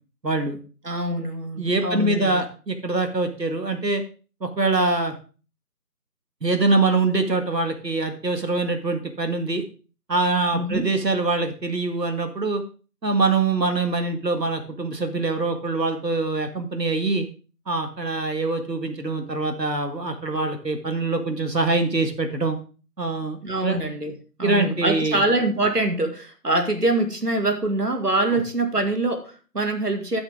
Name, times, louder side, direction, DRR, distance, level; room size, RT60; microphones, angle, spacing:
voice 1, 0.2-0.6 1.6-4.0 4.4-5.1 6.4-9.6 10.1-12.6 13.0-17.3 17.7-22.6 23.0-23.8 24.4-25.2, right 3 dB, 90° right, 7 dB, 1.9 m, -24 dB
voice 2, 0.8-2.4 10.5-10.9 23.4-30.2, right 2 dB, 70° right, 5 dB, 2.1 m, -24 dB
13.0 x 6.5 x 3.6 m, 0.36 s
figure-of-eight pair, 175°, 48 cm